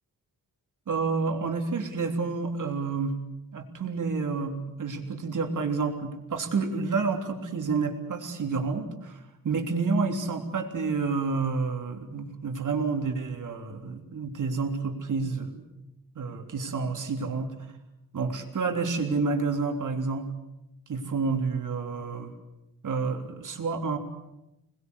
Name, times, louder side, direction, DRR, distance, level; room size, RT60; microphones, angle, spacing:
voice 1, 0.9-3.2 3.5-15.6 16.2-17.5 18.1-20.3 20.9-22.3 22.8-24.0, right 4 dB, 60° right, 4 dB, 3.5 m, -29 dB
26.5 x 20.5 x 8.3 m, 0.92 s
wide cardioid pair, 130°, 35 cm